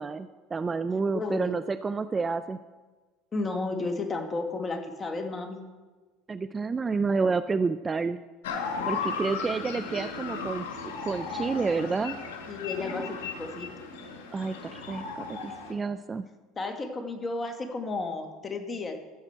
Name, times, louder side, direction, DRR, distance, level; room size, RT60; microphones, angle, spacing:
voice 1, 0.0-2.6 6.3-8.2 8.9-12.2 14.3-16.3, right 4 dB, 25° right, 12 dB, 0.4 m, -29 dB
voice 2, 1.1-1.5 3.3-5.6 12.5-13.7 16.6-18.9, left 3 dB, 25° left, 5 dB, 1.6 m, -33 dB
sound 1, 8.4-15.7, left 4 dB, 90° left, 1.5 m, -35 dB
15.0 x 7.3 x 4.5 m, 1.3 s
supercardioid pair, 95°, 0 cm